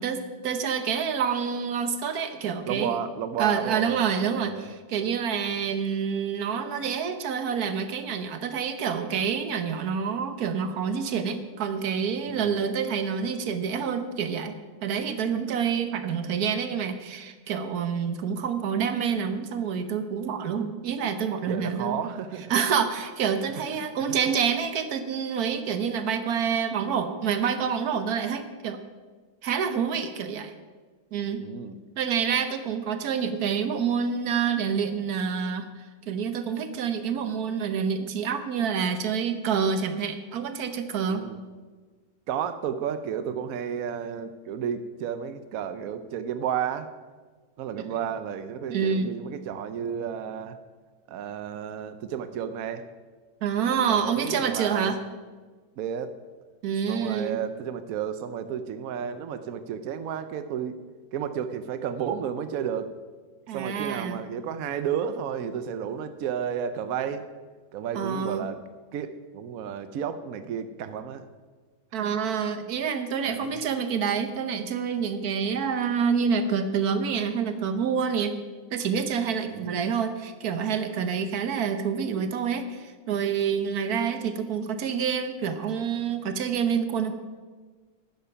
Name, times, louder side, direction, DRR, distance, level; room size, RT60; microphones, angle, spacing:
voice 1, 0.0-3.0 3.4-14.6 14.8-22.0 22.5-28.8 29.4-30.5 31.1-31.4 32.0-41.2 47.8-47.9 48.7-49.1 53.4-55.0 56.6-57.4 63.5-64.2 67.9-68.5 71.9-78.3 78.7-87.1, right 6 dB, 55° right, 9 dB, 1.2 m, -27 dB
voice 2, 2.7-4.0 4.5-4.7 12.3-12.6 21.5-22.5 23.8-24.2 31.4-31.8 41.1-41.4 42.3-46.9 47.6-50.6 51.1-52.8 53.9-54.9 55.8-56.1 56.9-60.8 61.1-62.9 63.5-67.3 67.7-68.6 68.9-71.3 73.2-73.6 79.5-79.8, right 8 dB, 75° right, 10 dB, 0.8 m, -32 dB
12.0 x 9.4 x 5.7 m, 1.4 s
omnidirectional pair, 2.2 m